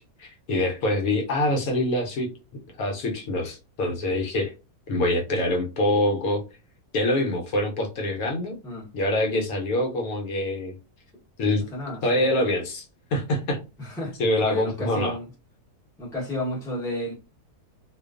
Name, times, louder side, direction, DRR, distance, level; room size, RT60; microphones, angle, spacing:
voice 1, 0.0-2.3 2.8-4.5 4.9-6.4 6.9-8.5 8.9-10.8 11.4-11.6 12.0-12.9 13.1-13.6 14.2-15.2, left 1 dB, 70° left, 1.0 m, -25 dB
voice 2, 11.7-12.2 13.8-14.2 14.4-15.2 16.0-17.1, left 1 dB, 5° left, 0.6 m, -32 dB
2.5 x 2.2 x 2.3 m
omnidirectional pair, 1.6 m